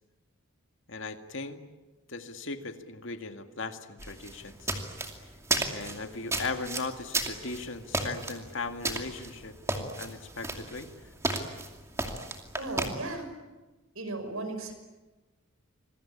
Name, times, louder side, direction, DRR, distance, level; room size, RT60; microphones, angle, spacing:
voice 1, 0.9-1.6 2.1-4.7 5.7-10.9, left 3 dB, 60° left, 7 dB, 2.1 m, -38 dB
sound 1, 4.0-12.9, right 2 dB, 15° right, 2.5 m, -34 dB
voice 2, 12.6-13.3 14.0-14.7, right 2 dB, 75° right, 7 dB, 5.7 m, -35 dB
27.0 x 22.0 x 8.7 m, 1.2 s
head